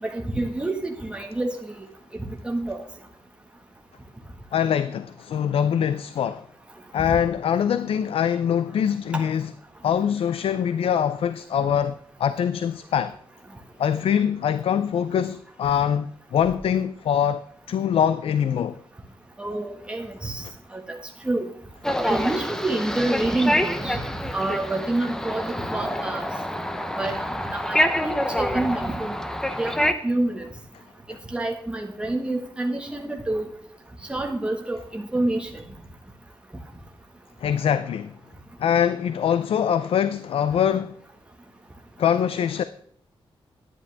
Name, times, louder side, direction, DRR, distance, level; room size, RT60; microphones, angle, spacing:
voice 1, 0.0-1.9 2.2-2.8 9.1-9.2 19.4-20.4 20.7-21.0 21.2-21.5 22.0-24.0 24.3-25.4 25.7-26.3 27.0-27.2 27.4-29.2 29.6-30.5 31.3-33.5 34.1-35.6, right 2 dB, 10° right, 1.5 m, -27 dB
voice 2, 4.5-6.5 6.9-9.5 9.8-13.2 13.8-17.4 17.7-18.8 37.4-38.1 38.6-40.9 42.0-42.6, left 8 dB, 80° left, 0.4 m, -23 dB
sound 1, 21.8-29.9, equal, 5° left, 0.7 m, -26 dB
10.5 x 10.0 x 3.4 m
wide cardioid pair, 150°, 9 cm